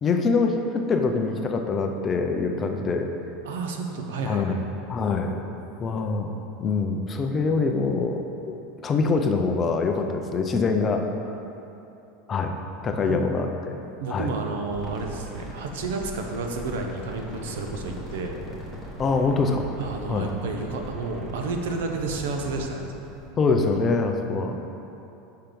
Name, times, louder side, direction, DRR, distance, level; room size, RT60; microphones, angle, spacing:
voice 1, 0.0-3.1 4.3-4.6 4.9-5.4 5.8-6.3 6.6-8.6 8.8-11.0 12.3-12.6 12.8-13.8 14.1-14.3 19.0-19.7 20.1-20.3 23.4-24.6, left 4 dB, 20° left, 4 dB, 0.4 m, -24 dB
voice 2, 3.4-4.6 13.1-13.3 14.0-18.4 19.8-23.0, right 3 dB, 85° right, 3 dB, 0.9 m, -31 dB
sound 1, 14.7-23.3, equal, ahead, 1.1 m, -39 dB
6.0 x 5.6 x 5.1 m, 2.9 s
supercardioid pair, 170°, 0 cm